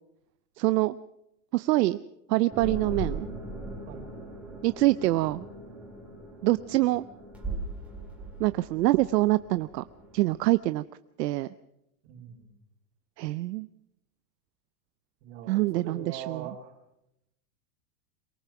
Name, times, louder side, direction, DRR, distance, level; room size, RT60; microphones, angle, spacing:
voice 1, 0.6-1.0 1.5-2.0 2.3-3.3 4.6-5.4 6.4-7.1 8.4-9.8 10.1-10.8 11.2-11.5 13.2-13.7 15.5-16.5, right 18 dB, 75° right, 15 dB, 0.7 m, -25 dB
sound 1, 2.5-10.5, right 2 dB, 5° right, 2.1 m, -39 dB
voice 2, 12.1-12.5 15.2-16.8, right 8 dB, 40° right, 1 dB, 4.7 m, -42 dB
23.5 x 19.0 x 5.9 m, 0.83 s
supercardioid pair, 180°, 49 cm